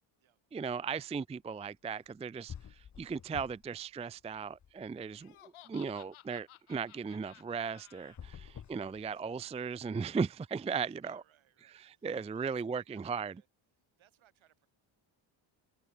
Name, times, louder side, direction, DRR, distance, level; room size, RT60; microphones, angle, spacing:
voice 1, 0.5-11.2 11.7-13.3, right 5 dB, 15° right, 0.4 m, -37 dB
sound 1, 2.1-2.2 2.5-3.8 4.1-5.2 8.0-9.6, left 8 dB, 35° left, 1.5 m, -49 dB
Laughter, 5.1-8.2, left 13 dB, 80° left, 3.1 m, -57 dB
voice 2, 8.3-9.4 10.8-13.5 14.0-14.7, right 12 dB, 70° right, 6.9 m, -67 dB
cardioid pair, 170°, 49 cm